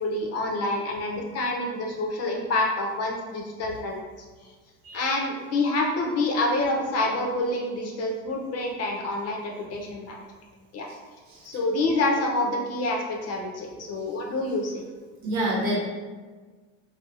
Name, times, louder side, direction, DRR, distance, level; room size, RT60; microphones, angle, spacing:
voice 1, 0.0-4.0 4.9-10.2 10.7-10.9 11.4-14.8, left 2 dB, 45° left, 0 dB, 0.6 m, -27 dB
voice 2, 15.2-15.8, right 1 dB, 55° right, -3 dB, 1.0 m, -26 dB
2.6 x 2.4 x 2.4 m, 1.4 s
supercardioid pair, 85°, 35 cm